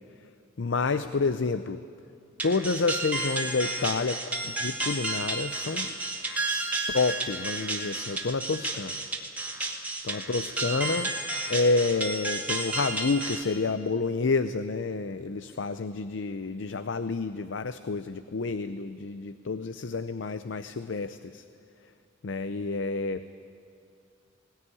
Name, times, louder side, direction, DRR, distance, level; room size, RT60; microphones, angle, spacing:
voice 1, 0.6-1.8 2.4-6.0 6.9-9.0 10.0-11.1 11.5-21.4 22.2-23.3, left 3 dB, 70° left, 12 dB, 0.6 m, -29 dB
sound 1, 2.4-13.4, right 2 dB, 10° right, 2.0 m, -32 dB
19.5 x 19.0 x 9.8 m, 2.5 s
head